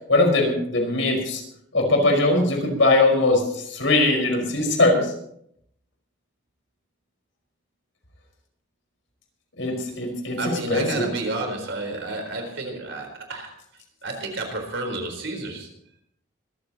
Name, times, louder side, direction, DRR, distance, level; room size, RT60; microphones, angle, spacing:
voice 1, 0.1-1.4 1.7-5.1 9.6-10.4 10.7-11.1, left 2 dB, 70° left, 2 dB, 5.2 m, -20 dB
voice 2, 10.4-13.6 14.0-15.7, right 2 dB, 65° right, 3 dB, 4.3 m, -30 dB
25.0 x 14.5 x 3.0 m, 0.71 s
head